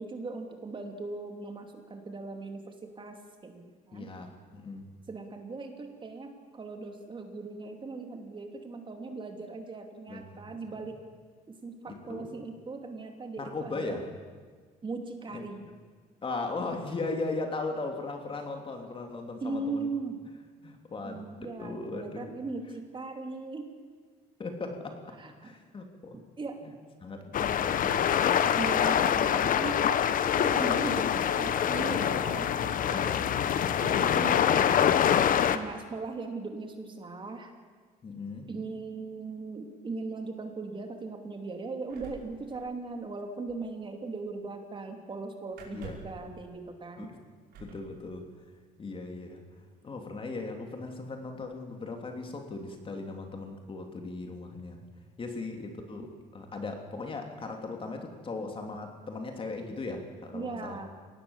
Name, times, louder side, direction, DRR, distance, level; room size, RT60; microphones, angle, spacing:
voice 1, 0.0-4.1 5.1-11.0 11.5-14.0 14.8-15.7 19.4-20.2 21.0-23.7 25.2-25.5 26.4-26.6 28.6-30.0 30.3-33.2 33.8-34.4 35.5-37.5 38.5-47.1 60.3-60.9, right 3 dB, 30° right, 4 dB, 2.8 m, -39 dB
voice 2, 3.9-4.9 10.1-10.4 11.9-12.3 13.4-14.1 15.3-15.5 16.2-19.9 20.6-21.2 21.6-22.3 24.4-25.1 25.4-26.2 26.6-26.7 27.0-28.4 28.7-28.8 32.9-33.9 38.0-38.5 45.7-46.0 47.0-47.2 47.6-48.3 48.8-49.4 49.8-54.8 55.2-60.8, left 3 dB, 30° left, 3 dB, 3.2 m, -38 dB
sound 1, 27.3-35.6, left 9 dB, 55° left, 1.1 m, -25 dB
sound 2, 41.9-43.2 43.5-43.7 45.5-46.2 47.5-47.9 49.0-49.1 49.5-50.0, right 5 dB, 70° right, 5.3 m, -48 dB
24.0 x 18.5 x 7.4 m, 1.5 s
cardioid pair, 110°, 17 cm